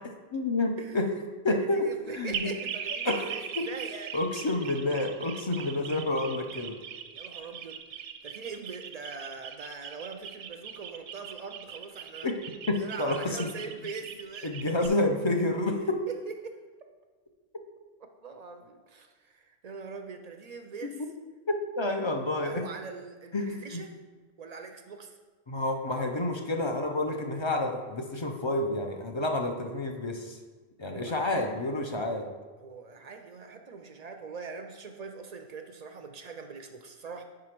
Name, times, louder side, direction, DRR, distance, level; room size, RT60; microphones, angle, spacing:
voice 1, 0.3-1.1 1.4-1.9 2.1-2.5 3.1-3.7 4.1-6.8 12.2-12.3 12.7-13.5 14.4-16.0 20.8-21.1 21.5-22.6 23.3-23.8 25.5-30.4 30.8-32.3, left 2 dB, 45° left, 3 dB, 0.4 m, -29 dB
voice 2, 1.5-4.2 7.1-7.8 8.2-12.3 12.8-14.5 16.3-16.6 18.0-21.0 22.4-24.0 24.4-25.2 30.9-31.6 32.6-37.2, right 4 dB, 55° right, 6 dB, 0.4 m, -42 dB
sound 1, 2.3-14.9, right 8 dB, 80° right, 0.9 m, -40 dB
4.9 x 4.8 x 5.8 m, 1.4 s
omnidirectional pair, 1.2 m